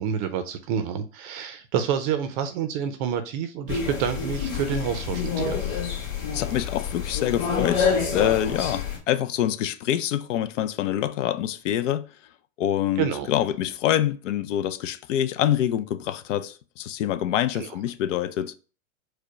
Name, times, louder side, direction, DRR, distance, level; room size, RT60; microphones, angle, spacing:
voice 1, 0.0-5.8 13.0-13.3 17.5-17.7, right 8 dB, 40° right, 0.5 m, -28 dB
sound 1, 3.7-9.0, left 6 dB, 30° left, 2.0 m, -27 dB
voice 2, 6.3-12.1 12.6-18.5, left 11 dB, 60° left, 0.6 m, -26 dB
4.8 x 2.2 x 4.6 m
hypercardioid pair, 130°, 41 cm